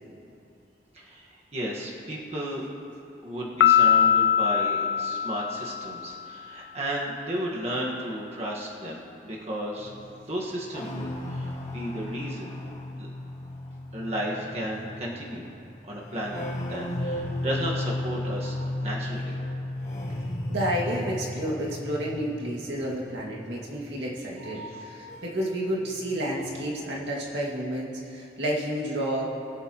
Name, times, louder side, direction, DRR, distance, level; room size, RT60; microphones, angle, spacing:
voice 1, 0.9-2.7 3.2-9.9 10.3-12.6 13.0-13.1 13.9-15.5 15.8-19.3 24.5-24.8, equal, 35° right, -4 dB, 1.5 m, -34 dB
Piano, 3.6-6.2, left 9 dB, 70° left, 0.3 m, -22 dB
sound 1, 9.8-25.6 25.9-26.7, left 1 dB, 40° left, 1.5 m, -35 dB
voice 2, 20.5-29.3, equal, 85° right, -3 dB, 2.1 m, -30 dB
22.0 x 8.2 x 3.0 m, 2.7 s
head